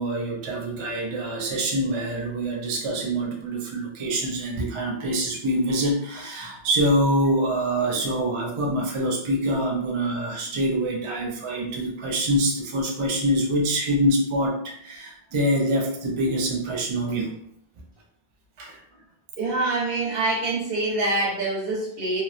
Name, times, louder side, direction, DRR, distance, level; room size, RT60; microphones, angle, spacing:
voice 1, 0.0-17.3 18.6-18.8, right 1 dB, 45° right, -1 dB, 0.4 m, -25 dB
voice 2, 19.4-22.2, right 2 dB, 65° right, -4 dB, 1.0 m, -25 dB
2.9 x 2.0 x 2.4 m, 0.70 s
omnidirectional pair, 1.1 m